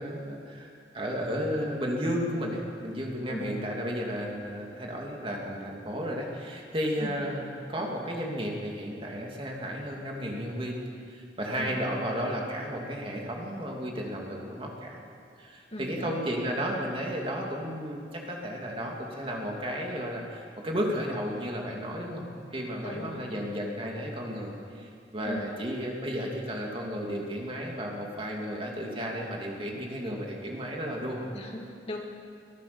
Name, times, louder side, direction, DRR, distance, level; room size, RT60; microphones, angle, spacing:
voice 1, 0.0-15.0 15.4-22.2 22.5-31.3, equal, 30° right, -1 dB, 2.9 m, -33 dB
voice 2, 11.6-11.9 15.7-16.2 22.8-23.3 25.2-25.5 31.3-32.0, left 1 dB, 35° left, 0 dB, 2.3 m, -38 dB
23.0 x 16.0 x 7.1 m, 2.3 s
head